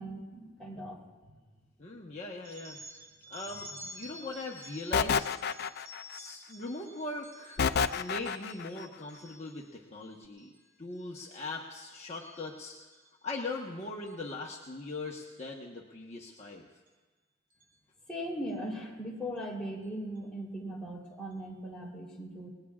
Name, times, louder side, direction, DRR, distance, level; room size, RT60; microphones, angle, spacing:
voice 1, 0.0-1.3 3.7-3.8 18.1-22.5, equal, 5° left, -5 dB, 3.5 m, -39 dB
voice 2, 1.8-2.8 3.3-5.3 6.1-7.6 7.9-10.5 10.8-12.7 13.2-16.6, left 2 dB, 30° left, -2 dB, 1.2 m, -40 dB
sound 1, 2.4-9.7 10.2-10.6 10.9-11.4 11.7-13.1 14.1-14.3 15.2-15.4 16.4-16.5 16.9-17.0 17.5-17.7, equal, 40° right, 1.4 m, -51 dB
sound 2, 4.9-6.2 7.6-8.7, left 6 dB, 50° left, 0.4 m, -29 dB
29.5 x 19.5 x 2.4 m, 1.4 s
head